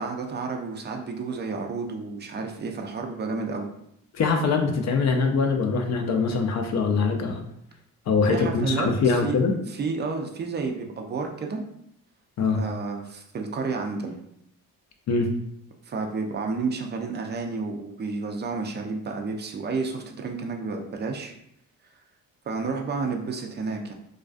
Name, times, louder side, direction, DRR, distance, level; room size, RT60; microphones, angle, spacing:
voice 1, 0.0-3.7 8.3-9.4 9.7-11.6 12.5-14.1 15.9-21.3 22.5-23.9, right 4 dB, 30° right, 3 dB, 0.4 m, -31 dB
voice 2, 4.1-7.4 8.1-9.5 12.4-12.6 15.1-15.3, left 4 dB, 50° left, 4 dB, 0.5 m, -23 dB
2.3 x 2.3 x 2.4 m, 0.75 s
cardioid pair, 80°, 35 cm